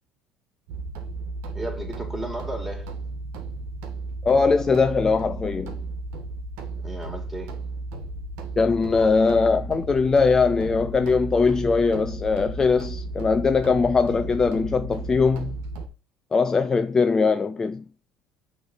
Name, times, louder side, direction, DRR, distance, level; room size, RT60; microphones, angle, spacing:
sound 1, 0.7-15.9, right 2 dB, 75° right, 1.4 m, -34 dB
voice 1, 1.5-2.9 6.8-7.6, right 1 dB, 10° right, 2.8 m, -34 dB
voice 2, 4.2-5.8 8.6-15.6 16.3-17.8, left 4 dB, 25° left, 0.4 m, -21 dB
6.3 x 3.3 x 5.7 m
supercardioid pair, 105°, 2 cm